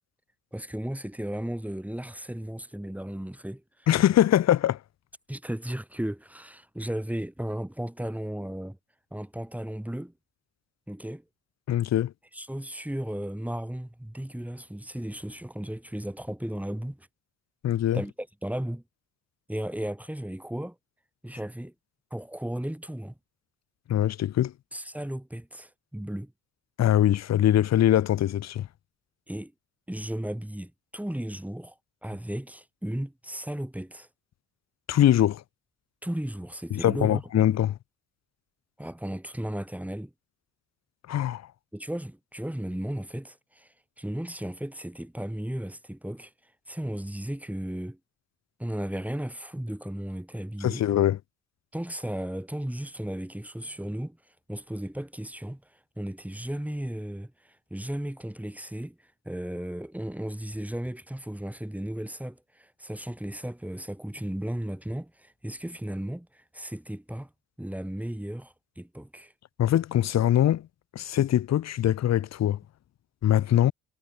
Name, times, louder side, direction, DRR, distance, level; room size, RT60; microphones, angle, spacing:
voice 1, 0.5-3.9 5.3-8.8 9.1-10.1 10.9-11.2 12.3-17.1 17.9-18.8 19.5-20.7 21.2-21.7 22.1-23.1 24.7-26.3 29.3-29.5 29.9-31.7 32.0-34.1 36.0-37.4 38.8-40.1 41.7-43.7 44.0-46.3 46.7-48.0 48.6-50.8 51.7-54.2 54.5-55.6 56.0-59.0 59.2-67.3 67.6-69.3, right 1 dB, 5° right, 3.2 m, -35 dB
voice 2, 3.9-4.8 11.7-12.1 17.6-18.0 23.9-24.5 26.8-28.7 34.9-35.4 36.7-37.8 41.1-41.4 50.6-51.2 69.6-70.7 70.9-72.6 73.2-73.7, left 11 dB, 50° left, 0.7 m, -22 dB
supercardioid pair, 65°, 34 cm